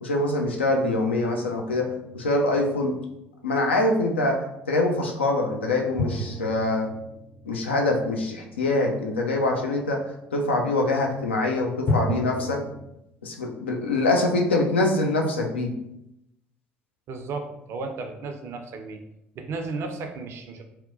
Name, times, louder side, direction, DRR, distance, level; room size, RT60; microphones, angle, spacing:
voice 1, 0.0-3.0 3.4-6.9 7.5-12.6 13.2-15.7, left 2 dB, 80° left, 2 dB, 0.3 m, -24 dB
sound 1, 1.8-3.1 6.0-8.6 11.9-12.8, left 2 dB, 35° left, 0.6 m, -31 dB
voice 2, 17.1-19.0 19.4-20.6, right 3 dB, 45° right, 5 dB, 0.4 m, -34 dB
2.7 x 2.1 x 2.5 m, 0.84 s
figure-of-eight pair, 55°, 6 cm